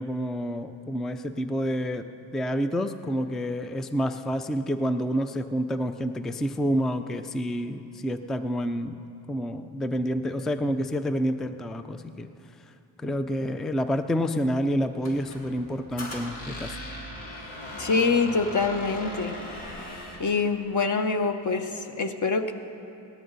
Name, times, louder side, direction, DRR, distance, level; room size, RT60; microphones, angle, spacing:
voice 1, 0.0-2.1 2.3-9.0 9.3-12.3 13.0-16.8, equal, ahead, 10 dB, 0.3 m, -28 dB
Squeak, 15.0-20.3, left 1 dB, 70° left, 2.6 m, -39 dB
voice 2, 17.8-19.4 20.2-22.5, left 4 dB, 35° left, 8 dB, 1.0 m, -25 dB
18.5 x 13.0 x 4.0 m, 2.9 s
cardioid pair, 85°, 49 cm